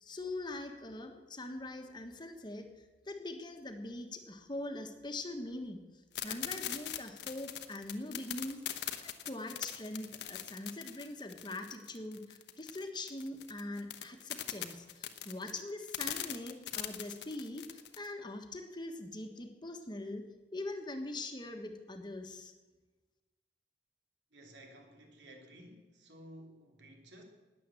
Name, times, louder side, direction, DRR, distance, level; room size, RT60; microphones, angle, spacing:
voice 1, 0.0-5.8 6.1-20.2 20.5-22.5, left 2 dB, 25° left, 5 dB, 1.3 m, -42 dB
sound 1, 6.1-18.1, left 11 dB, 75° left, 1.1 m, -41 dB
voice 2, 24.3-27.2, right 1 dB, 90° right, 2 dB, 3.2 m, -54 dB
19.5 x 7.7 x 7.6 m, 1.2 s
head